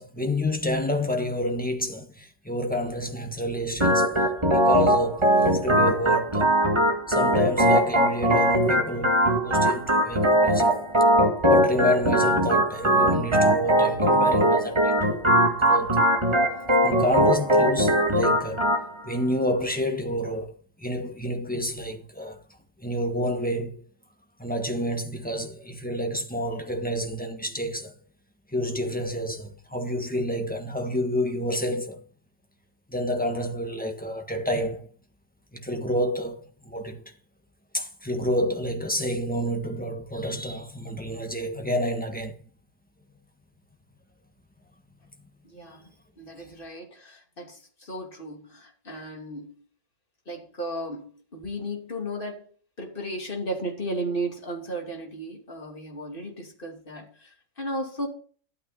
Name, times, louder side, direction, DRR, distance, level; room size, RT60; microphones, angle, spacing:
voice 1, 0.0-4.1 4.5-6.6 7.1-10.8 11.5-16.0 16.8-18.6 19.0-22.4 22.8-23.8 24.4-27.9 28.5-32.0 32.9-34.9 35.5-37.1 37.7-42.4, equal, 5° left, 1.3 m, -29 dB
Organ, 3.8-18.8, right 1 dB, 20° right, 1.9 m, -21 dB
voice 2, 45.4-45.9 46.2-49.5 50.3-52.5 52.8-58.1, right 1 dB, 40° left, 2.8 m, -35 dB
12.5 x 9.0 x 4.2 m
omnidirectional pair, 1.3 m